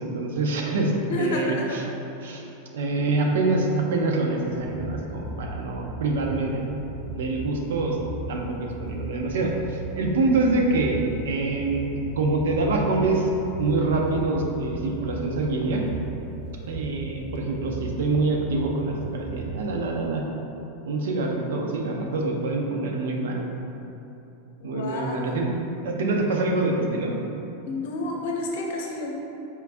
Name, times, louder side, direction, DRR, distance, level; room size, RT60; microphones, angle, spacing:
voice 1, 0.0-0.9 1.2-1.8 2.2-2.4 2.7-6.7 7.2-8.0 8.3-13.3 13.6-15.8 16.7-20.2 20.9-23.4 24.6-25.6 25.8-27.2, right 3 dB, 85° right, 1 dB, 0.5 m, -25 dB
voice 2, 1.1-1.8 24.6-25.3 27.7-29.1, left 2 dB, 55° left, -1 dB, 0.6 m, -30 dB
sound 1, 4.4-20.1, right 2 dB, 20° right, 0.5 m, -37 dB
4.5 x 2.6 x 3.4 m, 2.9 s
supercardioid pair, 175°, 0 cm